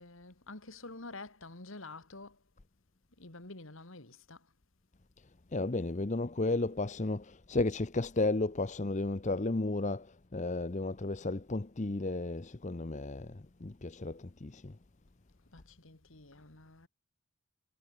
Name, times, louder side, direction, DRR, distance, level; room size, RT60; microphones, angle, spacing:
voice 1, 0.0-2.4 3.2-4.5 15.5-16.9, left 2 dB, 60° left, 2.4 m, -48 dB
voice 2, 5.5-14.8, left 2 dB, 30° left, 0.7 m, -33 dB
head